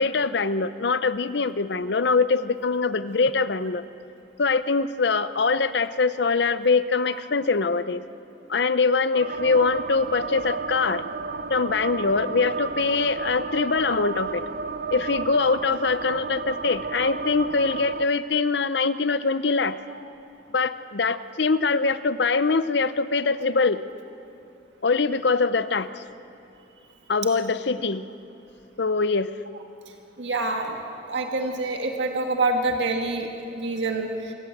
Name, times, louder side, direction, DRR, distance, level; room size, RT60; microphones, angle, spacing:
voice 1, 0.0-3.8 4.4-8.0 8.5-11.0 11.5-14.4 14.9-19.8 20.5-23.8 24.8-26.0 27.1-28.0 28.8-29.3, left 4 dB, 70° left, 14 dB, 0.7 m, -23 dB
sound 1, 9.1-18.1, right 4 dB, 55° right, 0.6 m, -32 dB
voice 2, 30.2-30.8 31.1-34.3, right 2 dB, 80° right, 3 dB, 1.7 m, -26 dB
26.0 x 15.0 x 7.9 m, 2.6 s
head